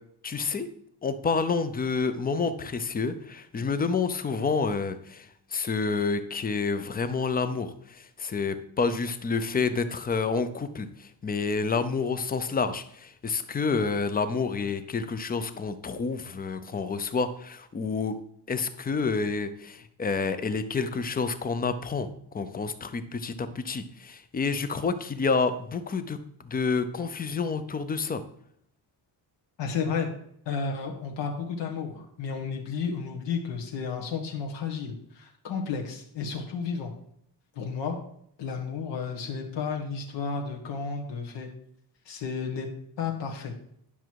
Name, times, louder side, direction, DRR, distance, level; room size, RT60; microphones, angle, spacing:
voice 1, 0.2-0.7 1.0-18.2 18.5-22.1 22.3-28.2, left 4 dB, 20° left, 12 dB, 0.5 m, -29 dB
voice 2, 29.6-30.1 30.4-36.9 37.5-38.0 38.4-41.5 42.0-42.7 43.0-43.5, left 5 dB, 75° left, 1 dB, 1.4 m, -32 dB
10.0 x 6.1 x 4.6 m, 0.69 s
cardioid pair, 180°, 43 cm